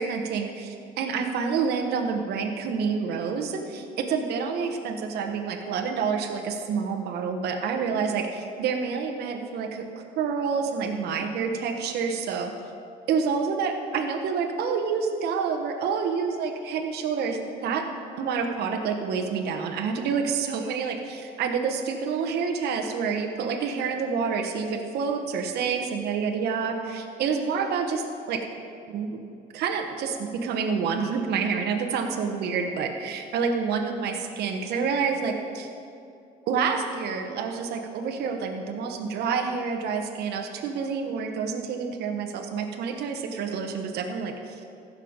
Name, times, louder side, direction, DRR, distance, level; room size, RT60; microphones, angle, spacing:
voice 1, 0.0-12.5 13.1-17.8 18.2-28.4 28.9-29.2 29.5-35.7 36.5-44.6, right 5 dB, 75° right, 4 dB, 1.1 m, -28 dB
15.0 x 6.5 x 5.1 m, 2.7 s
cardioid pair, 110°, 17 cm